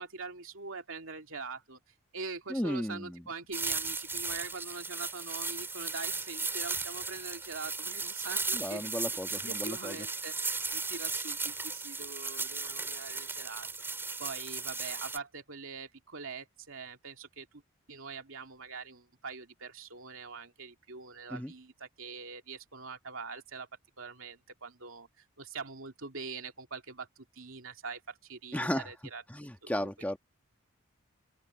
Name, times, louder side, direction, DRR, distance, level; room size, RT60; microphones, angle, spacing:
voice 1, 0.0-1.8 2.1-13.7 14.2-17.5 17.9-23.7 24.0-29.2 29.6-29.9, right 4 dB, 75° right, 2.6 m, -43 dB
voice 2, 2.5-3.2 8.5-10.0 21.3-21.5 28.5-28.9 29.3-30.2, equal, 5° left, 1.3 m, -34 dB
sound 1, 3.5-15.2, right 4 dB, 10° right, 3.4 m, -36 dB
open air
head